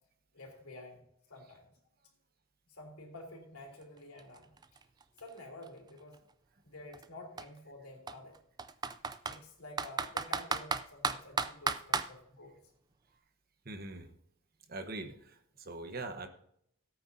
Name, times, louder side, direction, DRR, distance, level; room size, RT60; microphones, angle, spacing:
voice 1, 0.3-1.0 1.3-1.7 2.7-4.5 5.2-6.2 6.6-8.3 9.2-12.6, left 2 dB, 85° left, 1 dB, 3.1 m, -50 dB
Computer keyboard, 3.8-3.9 4.2-6.1 6.9-7.1 7.4-7.5 8.1-9.4 9.8-12.1, right 4 dB, 20° right, 0.3 m, -34 dB
voice 2, 13.6-14.1 14.7-16.3, right 2 dB, 45° right, 7 dB, 1.0 m, -42 dB
17.0 x 8.8 x 2.7 m, 0.70 s
head